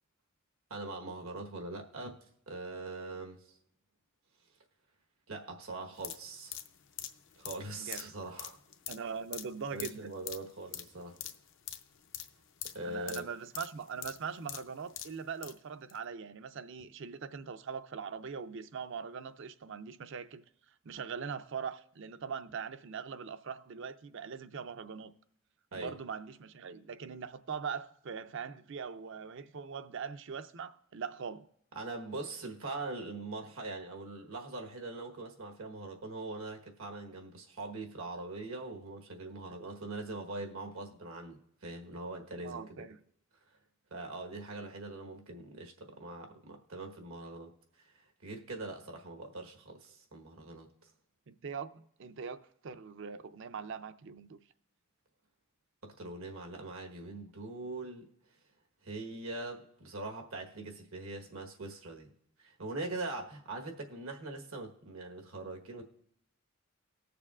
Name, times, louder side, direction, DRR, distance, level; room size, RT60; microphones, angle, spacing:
voice 1, 0.7-2.2 2.5-3.4 5.3-6.6 7.4-8.6 9.7-11.2 12.7-13.2 25.7-25.9 31.7-42.6 43.9-47.5 47.8-47.9 48.2-50.9 55.8-58.1 58.8-62.1 62.4-65.8, right 2 dB, 90° right, 1.3 m, -42 dB
sound 1, 5.9-15.6 15.9-16.0, left 11 dB, 60° left, 0.6 m, -45 dB
voice 2, 7.7-8.1 8.9-10.1 12.8-20.4 20.8-25.1 25.7-31.5 42.4-43.0 51.3-52.4 52.6-54.4, right 6 dB, 60° right, 0.5 m, -41 dB
19.5 x 6.8 x 2.4 m
head